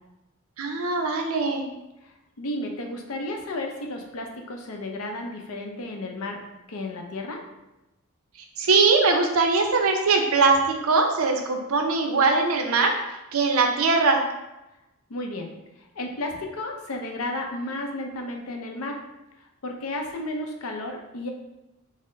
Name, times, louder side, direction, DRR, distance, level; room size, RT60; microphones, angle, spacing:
voice 1, 0.6-1.7 8.6-12.9 13.3-14.2, right 4 dB, 90° right, 4 dB, 0.6 m, -21 dB
voice 2, 2.0-6.4 6.7-7.4 15.1-15.5 15.8-19.0 19.4-21.3, left 1 dB, 85° left, 3 dB, 0.6 m, -33 dB
4.1 x 2.1 x 3.7 m, 0.96 s
head